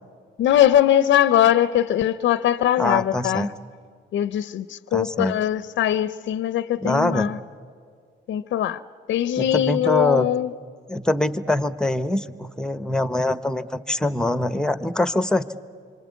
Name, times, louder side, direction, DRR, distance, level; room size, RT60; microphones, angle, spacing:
voice 1, 0.4-3.5 4.1-7.4 8.3-8.8 9.1-10.5, left 11 dB, 70° left, 0.6 m, -21 dB
voice 2, 2.8-3.5 4.9-5.4 6.8-7.3 9.4-10.3 10.9-15.6, left 1 dB, 5° left, 1.0 m, -24 dB
27.0 x 24.5 x 8.3 m
cardioid pair, 90°, 20 cm